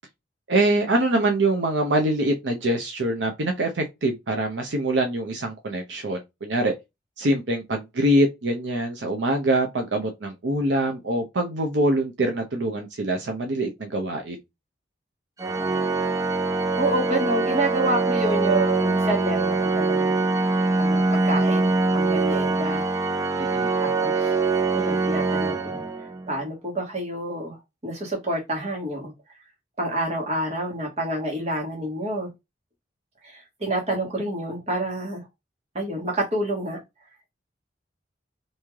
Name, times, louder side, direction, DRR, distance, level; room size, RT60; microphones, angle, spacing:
voice 1, 0.5-6.7 7.2-14.4 23.4-23.7, right 1 dB, 75° right, 0.7 m, -24 dB
Organ, 15.4-26.4, right 3 dB, 20° right, 0.4 m, -23 dB
voice 2, 16.7-20.2 20.8-22.8 23.8-24.3 24.7-25.8 26.3-27.6 27.8-29.1 29.8-32.3 33.2-35.2 35.7-36.8, right 1 dB, 35° right, 1.4 m, -28 dB
3.1 x 2.7 x 3.5 m
head